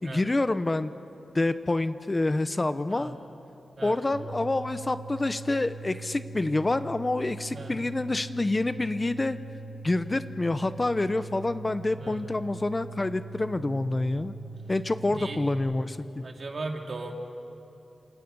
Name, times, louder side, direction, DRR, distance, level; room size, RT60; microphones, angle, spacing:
voice 1, 0.0-0.9 1.3-3.2 3.8-9.4 9.8-14.3 14.7-16.2, left 2 dB, 25° left, 12 dB, 0.7 m, -27 dB
sound 1, 4.1-15.6, right 3 dB, 70° right, 6.0 m, -42 dB
voice 2, 11.9-12.3 15.1-15.4 16.2-17.1, right 3 dB, 55° right, 2 dB, 2.6 m, -37 dB
28.0 x 27.0 x 5.4 m, 2.9 s
wide cardioid pair, 80°, 0 cm